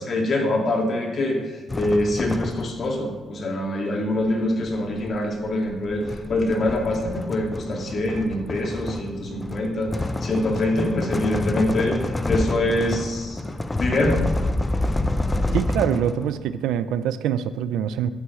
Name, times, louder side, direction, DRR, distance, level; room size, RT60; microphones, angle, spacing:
voice 1, 0.0-13.4 13.8-14.3, left 1 dB, 50° left, 1 dB, 2.1 m, -24 dB
sound 1, 1.7-3.0 4.2-16.5, left 2 dB, 20° left, 0.5 m, -28 dB
voice 2, 15.5-18.1, right 10 dB, 90° right, 13 dB, 0.4 m, -24 dB
11.0 x 9.2 x 3.2 m, 1.3 s
cardioid pair, 90°, 0 cm